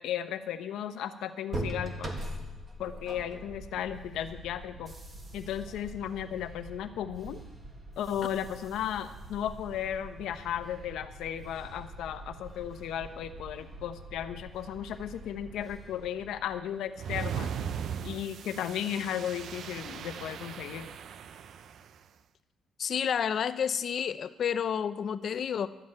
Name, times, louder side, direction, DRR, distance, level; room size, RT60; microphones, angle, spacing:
voice 1, 0.0-2.1 2.8-4.9 5.3-7.4 8.0-17.5 18.0-20.9, left 10 dB, 80° left, 9 dB, 0.9 m, -35 dB
sound 1, 1.5-17.2, right 1 dB, 25° right, 1.6 m, -43 dB
sound 2, 17.0-21.9, right 7 dB, 60° right, 0.6 m, -38 dB
voice 2, 22.8-25.7, left 8 dB, 45° left, 13 dB, 0.5 m, -30 dB
12.0 x 7.7 x 8.7 m, 1.1 s
cardioid pair, 150°, 0 cm